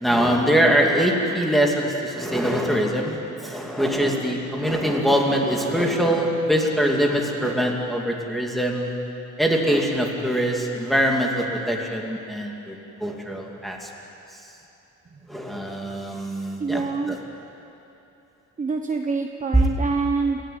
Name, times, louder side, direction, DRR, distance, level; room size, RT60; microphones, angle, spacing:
voice 1, 0.0-8.9 9.4-12.7 13.0-13.9 15.3-17.2 19.5-19.7, equal, ahead, 0 dB, 2.6 m, -23 dB
voice 2, 16.6-17.2 18.6-20.4, right 4 dB, 25° right, 4 dB, 1.0 m, -25 dB
29.0 x 14.0 x 9.6 m, 2.9 s
wide cardioid pair, 165°, 30 cm